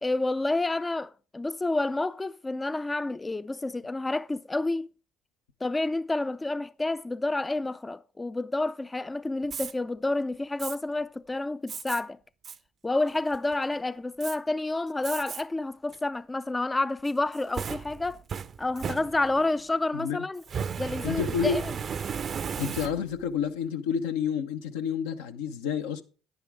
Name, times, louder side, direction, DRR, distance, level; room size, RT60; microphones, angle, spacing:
voice 1, 0.0-4.9 5.6-12.2 12.8-18.2 18.6-20.4 20.8-21.7, left 2 dB, 15° left, 0.4 m, -29 dB
Fire, 9.4-9.7 10.6-10.8 11.7-12.0 12.4-12.6 13.1-13.5 14.2-14.4 15.0-15.4 15.9-16.0 17.1-19.5 20.4-23.3, right 7 dB, 40° right, 0.6 m, -35 dB
voice 2, 21.0-21.6 22.6-26.0, left 7 dB, 80° left, 0.9 m, -29 dB
10.0 x 9.5 x 3.5 m
hypercardioid pair, 65°, 0 cm